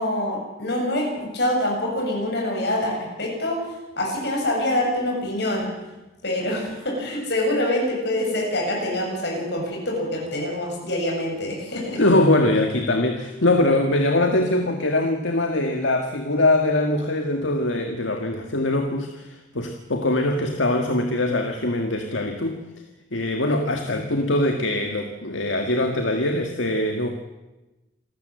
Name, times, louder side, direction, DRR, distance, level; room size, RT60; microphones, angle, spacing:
voice 1, 0.0-3.6 4.0-5.7 6.2-12.0, left 1 dB, 60° left, 0 dB, 7.7 m, -25 dB
voice 2, 12.0-22.6 23.1-27.1, left 2 dB, 75° left, 4 dB, 1.8 m, -22 dB
27.5 x 13.5 x 8.0 m, 1.1 s
head